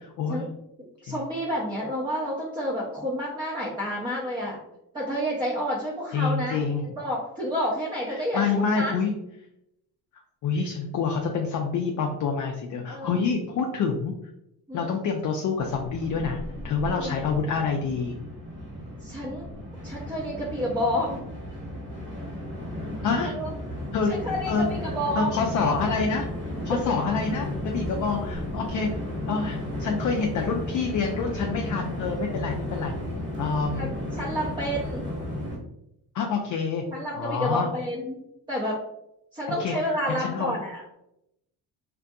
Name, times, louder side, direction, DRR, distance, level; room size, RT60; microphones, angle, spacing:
voice 1, 1.0-4.6 4.9-6.6 6.8-9.0 12.9-13.3 14.7-14.9 16.9-17.2 19.0-19.5 19.8-21.2 23.2-23.5 24.1-25.4 33.8-35.1 36.9-38.2 38.5-38.8 39.3-40.8, equal, 10° right, -4 dB, 0.6 m, -29 dB
voice 2, 6.1-7.0 8.1-9.1 10.4-14.1 14.7-18.2 23.0-23.3 23.9-24.1 24.5-24.7 25.1-26.3 26.6-28.9 29.3-32.9 33.4-33.9 36.1-36.8 37.1-37.7 39.5-39.8 40.2-40.5, left 5 dB, 50° left, 2 dB, 0.4 m, -27 dB
Train, 15.6-35.5, left 1 dB, 30° right, 1.3 m, -34 dB
2.6 x 2.5 x 2.3 m, 0.83 s
cardioid pair, 75°, 40 cm